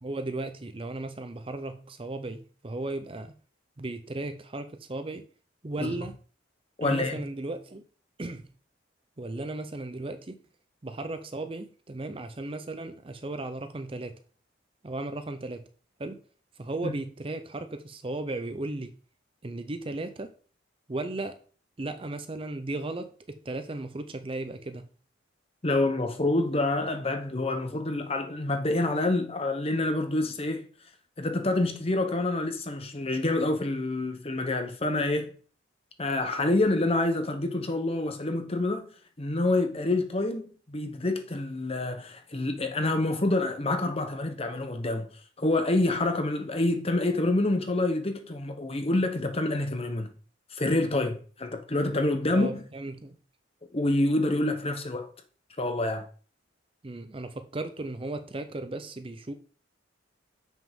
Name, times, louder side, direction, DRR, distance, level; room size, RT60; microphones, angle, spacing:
voice 1, 0.0-3.3 3.8-5.3 5.6-6.2 6.8-7.8 8.2-8.5 9.2-10.4 10.8-14.2 14.8-15.7 16.0-16.2 16.6-19.0 19.4-20.3 20.9-21.4 21.8-24.8 52.3-53.1 56.8-59.3, right 2 dB, 30° right, 0.6 m, -35 dB
voice 2, 6.8-7.2 16.8-16.9 25.6-30.6 31.2-35.3 36.0-38.9 39.2-45.1 45.4-50.1 50.5-52.6 53.7-55.1 55.6-56.1, left 2 dB, 30° left, 1.0 m, -27 dB
7.2 x 6.0 x 3.7 m
head